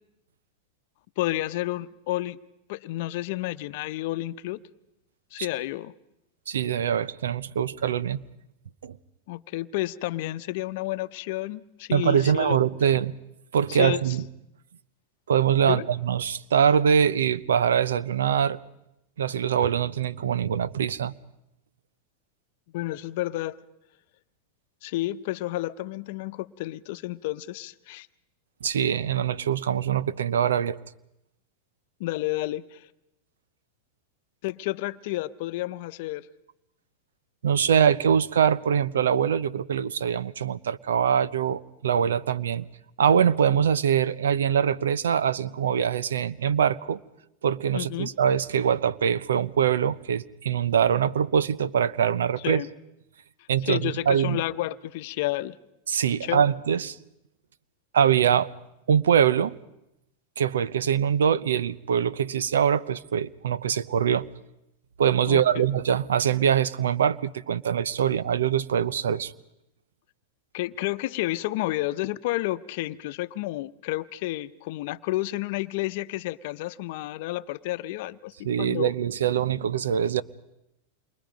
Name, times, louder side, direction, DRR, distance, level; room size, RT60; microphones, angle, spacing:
voice 1, 1.2-2.4 2.7-4.6 5.3-5.9 9.3-12.6 13.7-14.0 15.7-15.9 22.7-23.6 24.8-28.1 32.0-32.9 34.4-36.3 47.7-48.1 52.4-52.7 53.6-55.6 56.2-56.4 65.3-65.4 70.5-78.9, left 17 dB, 60° left, 0.8 m, -30 dB
voice 2, 6.5-8.2 8.8-9.0 11.9-13.1 13.5-14.2 15.3-18.6 19.2-21.1 28.6-30.8 37.4-42.7 43.0-47.0 47.4-52.6 53.5-54.4 55.9-57.0 57.9-58.5 58.9-59.5 60.4-64.3 65.0-69.3 78.4-80.2, right 8 dB, 90° right, 0.8 m, -23 dB
28.0 x 23.0 x 5.2 m
hypercardioid pair, 115°, 0 cm